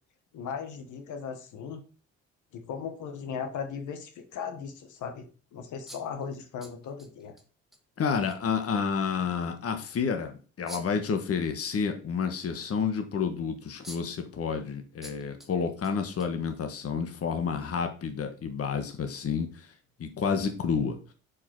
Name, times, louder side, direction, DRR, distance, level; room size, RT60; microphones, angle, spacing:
voice 1, 0.3-1.8 2.5-7.3, left 6 dB, 80° left, 6 dB, 1.4 m, -37 dB
sound 1, 5.9-7.4 7.7-7.8 8.3-8.4 10.7-11.1 13.3-13.4 13.8-14.2 15.0-15.5 15.8-16.8, equal, ahead, 1.7 m, -47 dB
voice 2, 8.0-19.5 20.0-21.0, left 6 dB, 50° left, 6 dB, 1.3 m, -30 dB
6.7 x 5.2 x 4.6 m, 0.38 s
cardioid pair, 90°, 30 cm